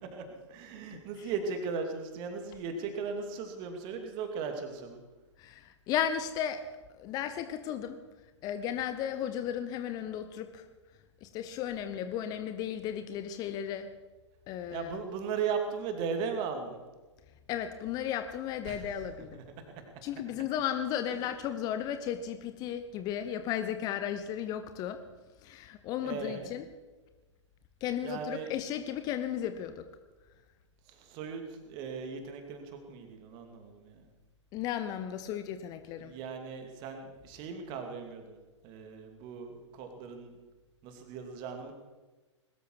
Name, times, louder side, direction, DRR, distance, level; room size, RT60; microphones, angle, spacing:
voice 1, 0.1-5.0 14.7-16.8 18.7-18.8 19.7-19.8 26.0-26.5 28.0-28.5 30.9-34.1 36.0-38.4 38.6-40.3 40.8-41.7, right 5 dB, 30° right, 5 dB, 2.7 m, -37 dB
voice 2, 5.4-6.7 6.9-8.0 8.4-10.7 11.2-13.9 14.5-14.9 17.5-19.4 20.0-25.0 25.4-26.7 27.8-29.9 34.5-36.1, left 9 dB, 25° left, 9 dB, 0.9 m, -35 dB
21.0 x 13.5 x 4.8 m, 1.3 s
figure-of-eight pair, 115°, 16 cm